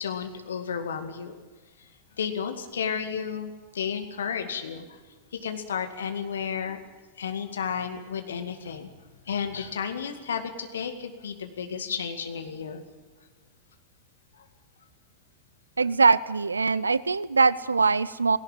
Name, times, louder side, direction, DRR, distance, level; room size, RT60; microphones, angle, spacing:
voice 1, 0.0-1.3 2.2-4.9 5.3-6.8 7.2-8.9 9.3-12.8, left 7 dB, 65° left, 6 dB, 2.1 m, -32 dB
voice 2, 15.8-18.4, right 4 dB, 75° right, 19 dB, 0.6 m, -22 dB
18.5 x 17.5 x 9.0 m, 1.3 s
figure-of-eight pair, 90°, 0 cm